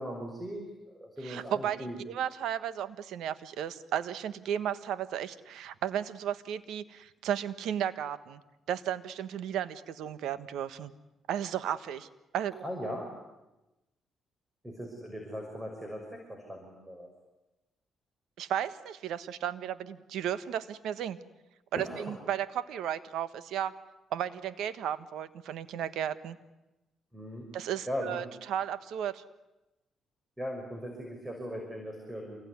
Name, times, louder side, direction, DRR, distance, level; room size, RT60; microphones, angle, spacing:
voice 1, 0.0-2.0 12.6-13.1 14.6-17.1 21.7-22.1 27.1-27.5 27.9-28.3 30.4-32.4, equal, 15° right, 2 dB, 6.2 m, -39 dB
voice 2, 1.2-8.4 8.7-10.9 11.3-12.6 18.4-21.2 21.7-23.7 24.1-26.4 27.5-29.2, right 10 dB, 80° right, 13 dB, 1.4 m, -34 dB
27.5 x 22.0 x 9.8 m, 1.0 s
cardioid pair, 90°, 0 cm